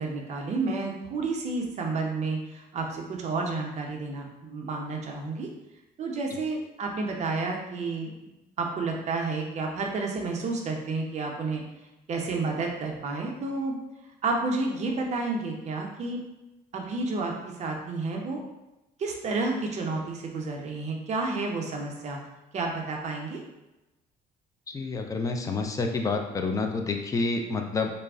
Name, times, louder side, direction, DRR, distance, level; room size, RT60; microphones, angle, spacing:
voice 1, 0.0-5.5 6.0-11.6 12.1-13.8 14.2-16.2 16.7-17.3 17.6-18.4 19.0-22.2 22.5-23.4, right 3 dB, 40° right, 1 dB, 0.6 m, -30 dB
voice 2, 24.7-27.9, left 3 dB, 20° left, 4 dB, 0.3 m, -28 dB
2.3 x 2.0 x 3.4 m, 0.99 s
cardioid pair, 110°, 17 cm